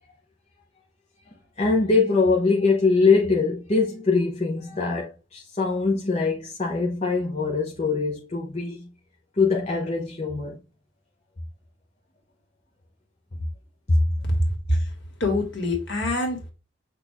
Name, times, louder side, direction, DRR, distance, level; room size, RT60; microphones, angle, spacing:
voice 1, 1.6-8.8 9.4-10.6, left 4 dB, 30° left, 0.7 m, -23 dB
voice 2, 15.2-16.5, left 1 dB, 60° left, 1.7 m, -25 dB
6.0 x 2.5 x 3.4 m
head